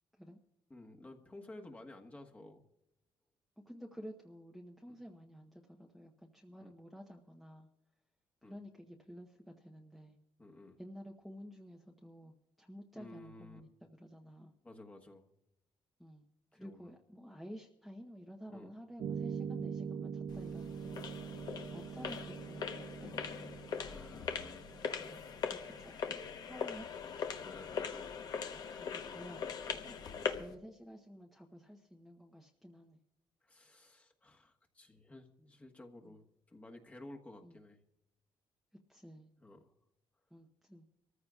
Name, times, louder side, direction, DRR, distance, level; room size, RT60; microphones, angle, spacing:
voice 1, 0.7-2.6 4.9-5.0 6.6-6.7 8.4-8.6 10.4-10.8 12.9-13.6 14.6-15.2 16.5-16.9 18.5-18.7 21.2-21.5 23.8-24.7 27.4-28.1 30.0-30.5 33.4-37.8 39.4-39.7, left 2 dB, 15° left, 3 dB, 1.3 m, -54 dB
voice 2, 3.7-7.7 8.4-10.2 10.8-13.7 14.0-14.5 16.0-16.3 16.5-21.0 21.7-23.2 25.0-26.9 28.5-29.9 30.4-33.0 36.0-36.2 37.4-37.6 38.9-39.3 40.3-40.9, equal, ahead, 0 dB, 0.9 m, -52 dB
sound 1, 19.0-25.5, right 7 dB, 60° right, 0.5 m, -43 dB
sound 2, 20.3-30.5, left 6 dB, 50° left, 1.0 m, -41 dB
25.5 x 14.5 x 2.4 m, 0.84 s
cardioid pair, 130°, 9 cm